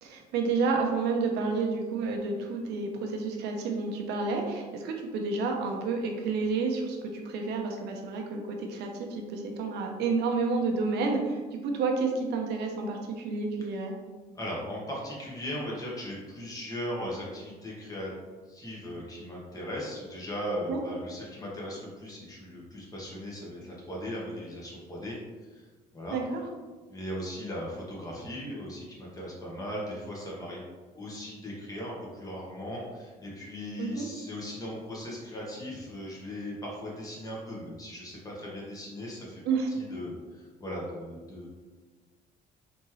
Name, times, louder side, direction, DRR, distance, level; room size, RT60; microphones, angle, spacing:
voice 1, 0.0-13.9 20.7-20.8 26.1-26.4 33.8-34.1 39.5-39.7, right 4 dB, 80° right, 2 dB, 0.8 m, -30 dB
voice 2, 14.3-18.1 18.5-25.2 25.4-25.6 25.9-26.2 26.9-30.6 30.9-39.4 39.7-41.5, equal, 20° left, -4 dB, 1.4 m, -38 dB
4.1 x 3.6 x 3.1 m, 1.4 s
cardioid pair, 110°, 17 cm